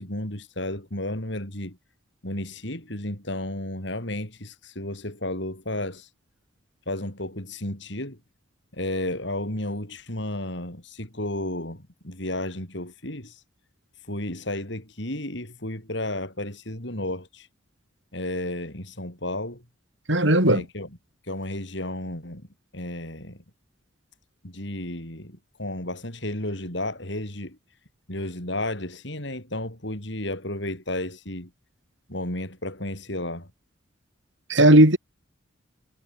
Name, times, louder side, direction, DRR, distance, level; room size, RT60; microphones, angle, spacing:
voice 1, 0.0-1.8 2.2-6.1 6.9-8.2 8.7-13.4 14.1-17.5 18.1-19.6 20.4-20.9 21.3-22.5 22.7-23.4 24.4-27.6 28.1-31.5 32.1-33.5, left 1 dB, 60° left, 6.9 m, -32 dB
voice 2, 20.1-20.6 34.5-35.0, right 1 dB, 65° right, 7.0 m, -16 dB
head